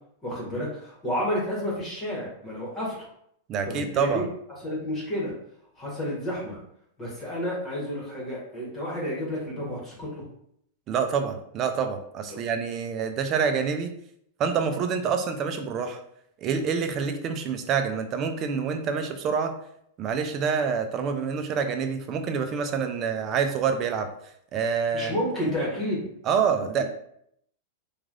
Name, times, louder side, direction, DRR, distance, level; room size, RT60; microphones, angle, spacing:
voice 1, 0.2-3.1 3.7-4.2 4.6-5.3 5.8-6.6 7.0-10.2 12.3-12.4 24.9-26.1 26.8-26.9, equal, 20° left, -6 dB, 1.2 m, -31 dB
voice 2, 3.5-4.3 10.9-13.9 14.4-16.0 16.4-19.6 20.0-24.1 24.5-25.1 25.4-25.5 26.3-26.8, right 6 dB, 40° right, 7 dB, 0.4 m, -27 dB
3.1 x 2.3 x 2.5 m, 0.72 s
hypercardioid pair, 110°, 0 cm